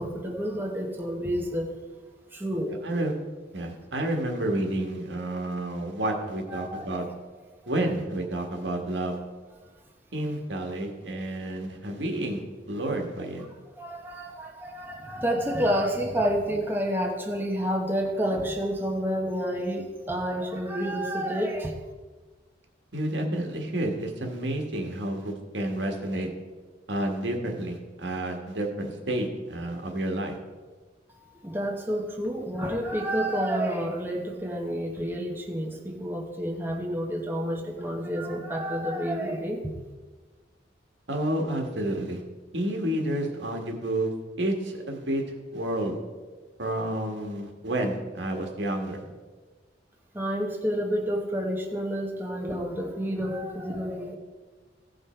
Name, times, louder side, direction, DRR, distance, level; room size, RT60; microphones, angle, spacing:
voice 1, 0.0-1.7 2.3-2.8 6.5-7.1 13.8-21.7 31.4-39.6 50.1-54.2, equal, 10° right, 0 dB, 1.0 m, -29 dB
voice 2, 2.7-3.1 3.5-7.1 7.7-9.2 10.1-12.4 12.7-13.4 22.9-26.3 26.9-30.4 41.1-42.2 42.5-44.1 44.4-45.2 45.5-46.0 46.6-49.1, right 1 dB, 75° right, 2 dB, 1.6 m, -30 dB
16.0 x 5.4 x 4.4 m, 1.3 s
head